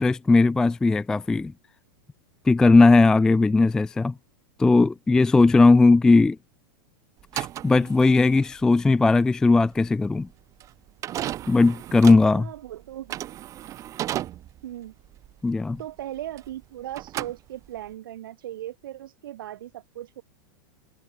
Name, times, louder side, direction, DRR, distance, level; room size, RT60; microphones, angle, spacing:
voice 1, 0.0-1.5 2.5-4.1 4.6-6.4 7.3-10.3 11.5-12.5 15.4-15.8, left 3 dB, 5° left, 0.3 m, -18 dB
sound 1, 7.2-16.6 16.9-17.9, right 13 dB, 30° right, 7.7 m, -35 dB
voice 2, 12.3-13.3 14.6-14.9 15.8-20.2, right 12 dB, 80° right, 3.8 m, -38 dB
supercardioid pair, 150°, 11 cm